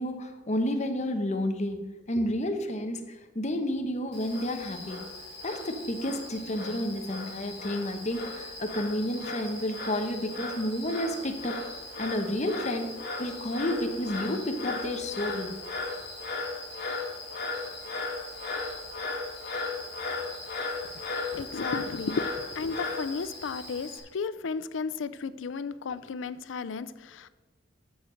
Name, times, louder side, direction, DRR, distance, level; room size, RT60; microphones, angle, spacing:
voice 1, 0.0-5.0 5.4-11.6 12.0-12.9 13.2-15.5, left 1 dB, 35° left, 5 dB, 0.9 m, -31 dB
Frog, 4.1-24.0, left 3 dB, 55° left, 2.2 m, -37 dB
voice 2, 21.3-27.3, left 5 dB, 75° left, 14 dB, 0.5 m, -34 dB
7.2 x 7.1 x 6.4 m, 1.2 s
head